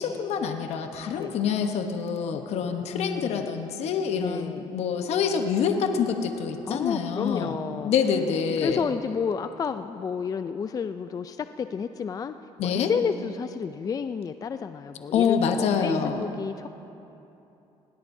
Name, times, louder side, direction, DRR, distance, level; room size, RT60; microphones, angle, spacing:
voice 1, 0.0-7.6 7.8-8.8 12.6-12.9 15.1-16.2, left 6 dB, 65° left, 6 dB, 1.0 m, -26 dB
voice 2, 2.9-3.5 4.2-4.7 6.7-7.9 8.6-12.4 12.6-16.7, left 6 dB, 30° left, 10 dB, 0.4 m, -31 dB
20.5 x 17.5 x 2.7 m, 2.9 s
cardioid pair, 95°, 12 cm